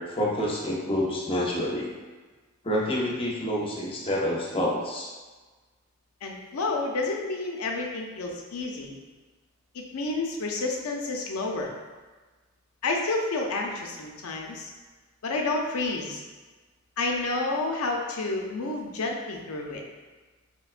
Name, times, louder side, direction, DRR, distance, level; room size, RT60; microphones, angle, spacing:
voice 1, 0.0-1.9 2.6-5.1, left 1 dB, 25° left, -4 dB, 0.6 m, -28 dB
voice 2, 6.2-8.9 9.7-11.7 12.8-14.7 15.2-16.2 17.0-19.8, left 3 dB, 85° left, 0 dB, 0.5 m, -30 dB
4.4 x 2.1 x 2.4 m, 1.3 s
head